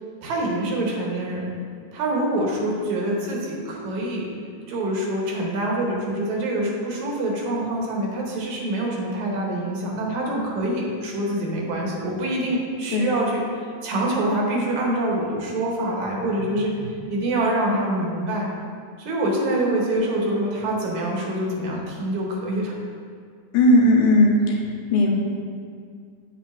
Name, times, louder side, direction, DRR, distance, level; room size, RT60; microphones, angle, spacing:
voice 1, 0.2-1.5 1.9-4.3 4.7-13.4 13.8-18.5 19.0-22.8, right 1 dB, 75° right, -2 dB, 2.5 m, -25 dB
voice 2, 23.5-24.6 24.9-25.1, left 1 dB, 80° left, -1 dB, 2.3 m, -16 dB
8.1 x 7.9 x 2.6 m, 2.1 s
omnidirectional pair, 3.4 m